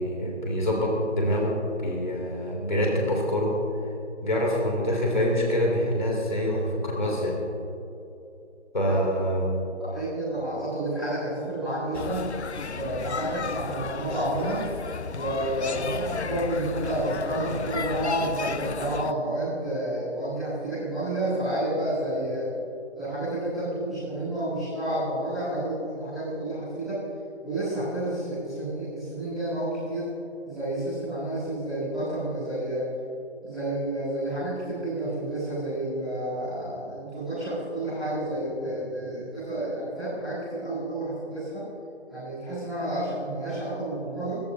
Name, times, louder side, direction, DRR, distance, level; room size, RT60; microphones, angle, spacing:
voice 1, 0.0-3.5 4.2-7.4 8.7-9.5, equal, 40° left, -2 dB, 2.8 m, -25 dB
voice 2, 9.8-12.3 12.7-14.6 15.1-22.5 22.9-27.0 27.4-30.1 30.4-32.8 33.4-41.6 42.1-44.4, right 1 dB, ahead, -20 dB, 3.0 m, -30 dB
sound 1, 11.9-19.1, left 5 dB, 70° left, 0.6 m, -33 dB
26.5 x 14.0 x 2.7 m, 2.8 s
figure-of-eight pair, 165°, 35 cm